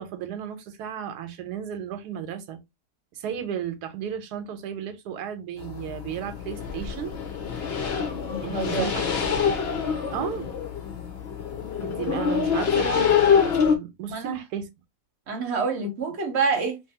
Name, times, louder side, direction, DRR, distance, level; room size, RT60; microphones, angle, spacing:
voice 1, 0.0-2.6 3.1-7.1 8.4-9.6 10.1-10.5 11.8-14.7, right 9 dB, 90° right, 1.2 m, -34 dB
sound 1, 5.6-13.7, left 7 dB, 60° left, 0.6 m, -25 dB
voice 2, 8.3-8.9 14.1-14.4 15.3-16.8, right 4 dB, 55° right, 0.9 m, -27 dB
2.6 x 2.5 x 2.7 m
omnidirectional pair, 1.7 m